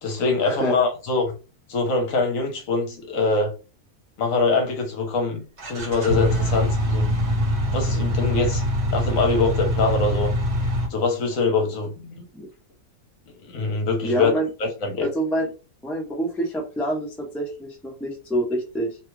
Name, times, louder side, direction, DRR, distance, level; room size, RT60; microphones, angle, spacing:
voice 1, 0.0-1.3 1.7-3.5 4.2-7.2 7.6-8.6 8.9-10.3 10.9-12.3 13.4-14.3 14.6-15.1, left 3 dB, 65° left, 1.1 m, -24 dB
sound 1, 5.6-10.9, equal, 50° right, 1.2 m, -23 dB
voice 2, 14.0-14.5 15.0-15.5 15.8-19.0, right 1 dB, ahead, 0.4 m, -26 dB
2.8 x 2.3 x 3.0 m
omnidirectional pair, 1.6 m